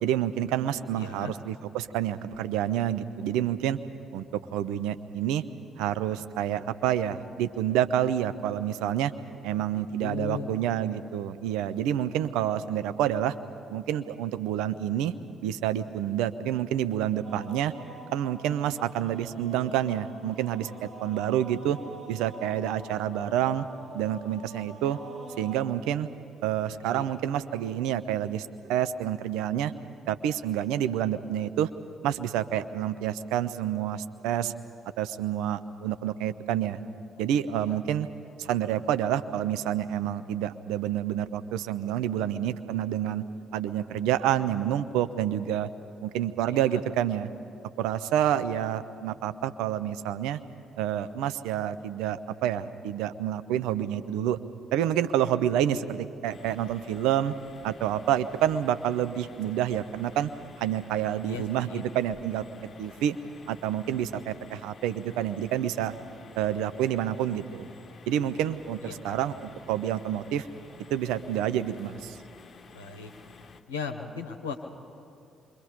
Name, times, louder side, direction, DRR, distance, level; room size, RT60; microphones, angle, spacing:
voice 1, 0.0-3.8 4.1-4.2 4.5-5.4 5.8-9.1 9.4-13.3 13.7-15.1 15.4-17.7 18.1-21.8 22.1-23.7 23.9-25.0 25.4-26.1 26.4-29.7 30.1-31.7 32.0-34.5 35.0-36.8 37.2-38.1 38.4-43.2 43.5-45.7 46.0-47.3 47.8-50.4 50.8-54.4 54.7-57.3 57.6-60.3 60.6-62.4 62.8-63.2 63.5-66.0 66.4-67.7 68.1-70.5 70.9-72.2, right 11 dB, 70° right, 12 dB, 0.6 m, -28 dB
voice 2, 0.9-1.3 9.5-10.5 26.7-27.1 37.5-37.8 46.5-46.8 55.5-55.8 61.3-61.8 68.8-69.2 72.7-73.1 73.7-74.6, left 5 dB, 80° left, 3 dB, 0.9 m, -38 dB
sound 1, 17.2-25.6, right 2 dB, 40° right, 3.2 m, -46 dB
sound 2, 56.3-73.6, left 4 dB, 45° left, 1.2 m, -51 dB
27.5 x 23.5 x 5.2 m, 2.6 s
figure-of-eight pair, 45°, 0 cm